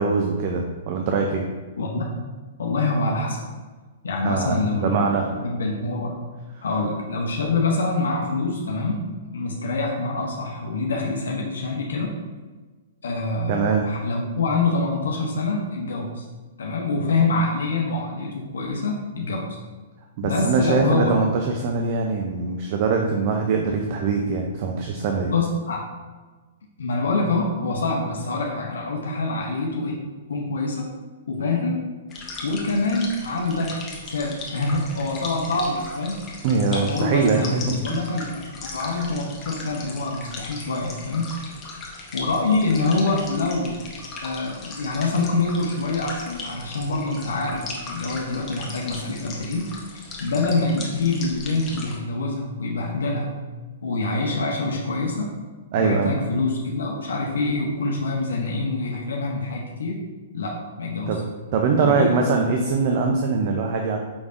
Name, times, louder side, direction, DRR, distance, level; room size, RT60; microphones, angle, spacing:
voice 1, 0.0-1.4 4.2-5.4 13.5-13.9 20.2-25.3 36.4-38.0 55.7-56.1 61.1-61.2 61.5-64.0, right 4 dB, 50° right, 2 dB, 0.4 m, -22 dB
voice 2, 2.6-3.5 4.0-5.1 5.4-6.2 6.6-9.1 9.3-12.1 13.0-16.3 16.6-19.5 20.2-21.2 25.3-25.8 26.8-30.0 30.3-30.9 31.3-31.9 32.4-33.8 34.0-36.3 36.7-37.5 37.8-41.3 42.1-43.8 44.2-49.7 50.2-53.3 53.8-55.4 55.8-60.0 60.3-61.2 61.8-62.2, left 3 dB, 85° left, -1 dB, 0.6 m, -25 dB
sound 1, 32.1-52.0, left 3 dB, 25° left, 0.8 m, -38 dB
5.1 x 3.4 x 2.5 m, 1.3 s
hypercardioid pair, 135°, 0 cm